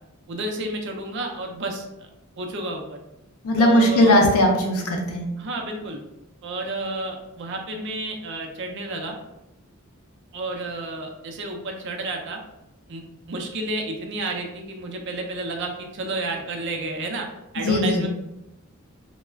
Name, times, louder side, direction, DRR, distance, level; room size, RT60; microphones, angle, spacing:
voice 1, 0.3-2.1 2.4-3.0 3.6-4.2 5.4-6.0 6.4-9.2 10.3-12.4 12.9-17.3 17.5-18.1, right 2 dB, 55° right, 3 dB, 0.4 m, -31 dB
voice 2, 3.4-5.2 17.6-18.0, left 1 dB, 80° left, 1 dB, 0.5 m, -18 dB
2.3 x 2.1 x 3.2 m, 0.91 s
head